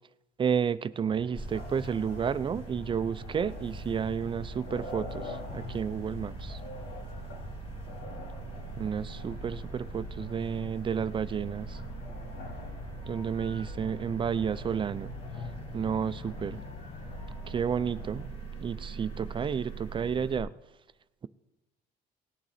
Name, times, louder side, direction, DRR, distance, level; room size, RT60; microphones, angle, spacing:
voice 1, 0.4-6.6 8.8-11.8 13.1-15.1 15.7-16.6 17.5-18.3 18.6-20.5, right 7 dB, 30° right, 15 dB, 0.4 m, -31 dB
sound 1, 1.1-18.3, left 3 dB, 80° left, 2.5 m, -44 dB
sound 2, 1.3-20.4, right 3 dB, 35° left, 1.9 m, -42 dB
18.0 x 8.8 x 4.1 m, 1.0 s
cardioid pair, 110°, 17 cm